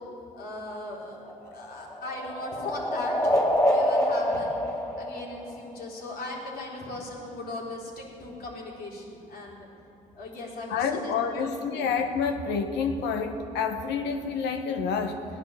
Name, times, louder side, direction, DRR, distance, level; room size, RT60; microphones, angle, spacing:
voice 1, 0.3-4.6 5.0-9.7 10.1-11.5 11.8-11.9, left 2 dB, 65° left, -3 dB, 4.0 m, -38 dB
sound 1, 1.1-5.9, equal, 20° left, 3.9 m, -26 dB
voice 2, 10.7-15.2, left 5 dB, 85° left, 6 dB, 1.2 m, -28 dB
17.0 x 10.5 x 7.4 m, 2.6 s
supercardioid pair, 65°, 17 cm